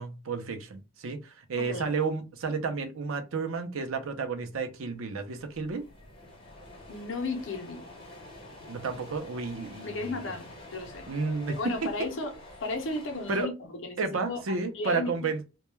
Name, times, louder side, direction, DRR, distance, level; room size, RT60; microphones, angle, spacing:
voice 1, 0.0-5.8 8.7-10.2 11.1-11.6 13.3-13.5 14.0-15.4, right 4 dB, 75° right, 0.5 m, -32 dB
voice 2, 1.6-1.9 6.9-7.9 9.8-11.1 11.5-12.3 12.6-15.3, left 2 dB, 65° left, 0.6 m, -34 dB
sound 1, 4.7-4.8 4.9-13.5, left 1 dB, 25° left, 0.8 m, -48 dB
2.2 x 2.1 x 3.0 m
head